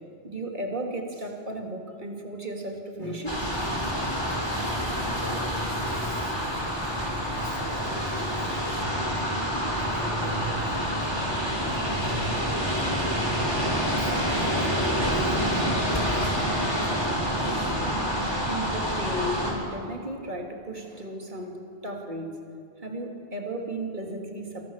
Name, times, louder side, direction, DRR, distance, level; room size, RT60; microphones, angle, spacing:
voice 1, 0.2-3.4 18.4-22.3 22.8-24.7, right 1 dB, 45° right, 1 dB, 3.2 m, -34 dB
sound 1, 3.3-19.5, equal, 20° left, 7.0 m, -27 dB
sound 2, 4.2-18.5, equal, 15° right, 7.1 m, -44 dB
voice 2, 5.2-6.4 7.4-8.6 9.8-10.9 11.7-12.9 13.8-16.7, equal, 85° right, -3 dB, 7.0 m, -40 dB
28.0 x 26.5 x 7.4 m, 2.4 s
omnidirectional pair, 1.1 m